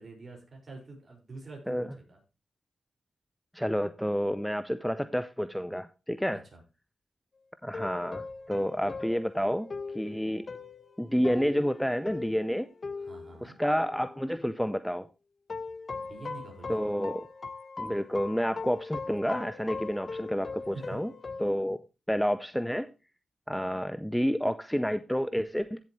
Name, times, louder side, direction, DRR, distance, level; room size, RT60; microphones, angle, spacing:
voice 1, 0.0-2.2 6.3-6.6 13.0-13.6 15.9-16.9 20.7-21.0, right 3 dB, 45° right, 5.4 m, -46 dB
voice 2, 3.5-6.4 7.6-9.7 9.9-10.5 11.0-12.7 13.4-15.1 16.7-17.3 17.8-21.1 21.4-21.8 22.1-22.9 23.5-25.8, equal, ahead, 0.6 m, -29 dB
sound 1, 7.7-14.3 15.5-21.5, left 4 dB, 40° left, 1.0 m, -40 dB
15.0 x 7.5 x 3.1 m
cardioid pair, 85°, 0 cm